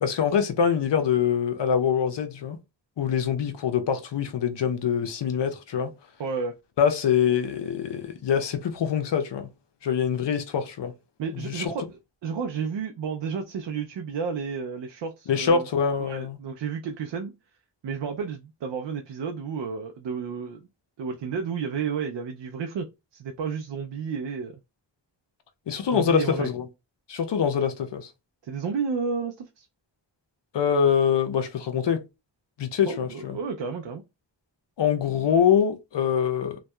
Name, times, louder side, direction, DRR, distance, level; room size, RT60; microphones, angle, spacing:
voice 1, 0.0-2.6 3.0-5.9 6.8-9.5 9.8-10.9 11.3-11.7 15.3-16.4 25.7-26.7 27.1-28.1 30.5-32.0 32.6-33.4 34.8-36.6, left 7 dB, 65° left, 0.6 m, -24 dB
voice 2, 6.2-6.5 11.2-11.8 12.2-15.6 16.0-17.3 17.8-20.7 21.0-24.6 25.9-26.5 28.4-29.7 32.9-34.0, right 6 dB, 70° right, 0.5 m, -31 dB
2.7 x 2.2 x 2.2 m
wide cardioid pair, 65°, 45 cm